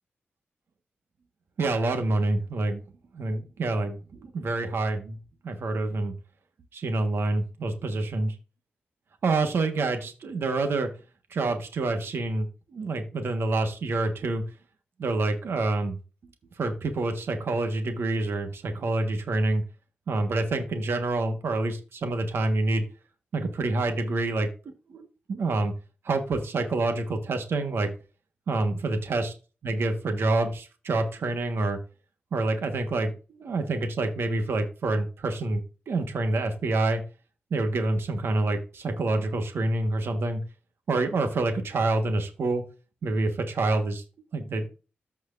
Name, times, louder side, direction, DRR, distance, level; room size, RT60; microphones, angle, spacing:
voice 1, 1.6-2.8 3.1-5.2 5.4-6.1 6.7-8.3 9.2-10.9 11.3-12.5 12.7-14.4 15.0-16.0 16.6-19.6 20.1-22.8 23.3-24.5 24.9-25.7 26.0-27.9 28.5-29.3 29.6-31.8 32.3-37.0 37.5-40.4 40.9-42.6 43.0-44.0 44.3-44.7, right 2 dB, 75° right, 6 dB, 1.4 m, -27 dB
14.0 x 4.7 x 2.6 m, 0.33 s
wide cardioid pair, 140°, 4 cm